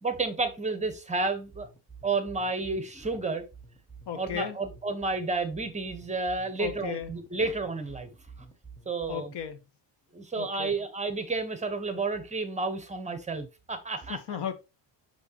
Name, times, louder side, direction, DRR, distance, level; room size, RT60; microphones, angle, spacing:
voice 1, 0.0-1.7 2.0-3.4 4.1-8.1 8.9-9.3 10.1-14.2, right 3 dB, 15° right, 1.1 m, -31 dB
sound 1, 1.5-9.5, right 5 dB, ahead, 1.6 m, -50 dB
voice 2, 4.1-4.6 6.6-7.1 9.1-9.6 10.4-10.7 14.1-14.5, left 8 dB, 60° left, 1.4 m, -35 dB
6.2 x 5.9 x 3.0 m
cardioid pair, 150°, 46 cm